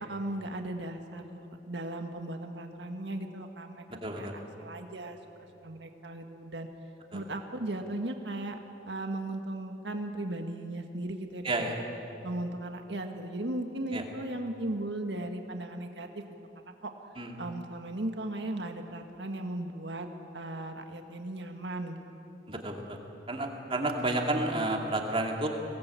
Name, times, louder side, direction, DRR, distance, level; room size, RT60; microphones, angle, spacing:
voice 1, 0.1-4.3 4.6-5.2 5.6-6.7 7.1-8.6 8.9-11.8 12.2-16.1 16.6-16.9 17.4-20.1 20.3-22.0, right 1 dB, 90° right, 5 dB, 1.6 m, -37 dB
voice 2, 4.0-4.4 7.1-7.2 11.4-11.8 13.9-14.0 17.2-17.3 22.5-23.0 23.3-25.5, right 2 dB, 30° right, 2 dB, 2.5 m, -31 dB
23.5 x 18.5 x 8.4 m, 3.0 s
head